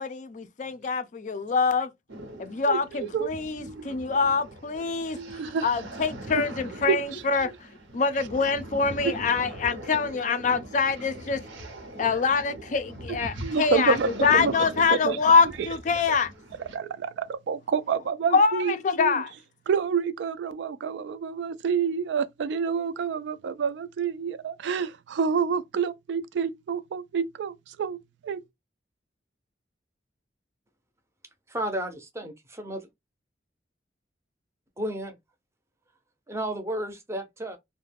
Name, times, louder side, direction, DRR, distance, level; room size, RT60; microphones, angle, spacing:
voice 1, 0.0-1.9 2.4-7.5 7.9-11.4 12.0-16.3 18.3-19.3, left 5 dB, 40° left, 0.3 m, -25 dB
sound 1, 2.1-16.8, right 1 dB, 90° right, 0.8 m, -41 dB
voice 2, 3.1-3.9 5.1-5.7 6.4-6.5 6.9-7.2 13.4-14.5 14.9-15.2 16.1-16.2 16.7-19.2 19.7-28.4, right 6 dB, 70° right, 0.3 m, -28 dB
voice 3, 31.5-32.9 34.8-35.2 36.3-37.6, right 1 dB, 15° right, 0.5 m, -32 dB
2.3 x 2.1 x 3.3 m
head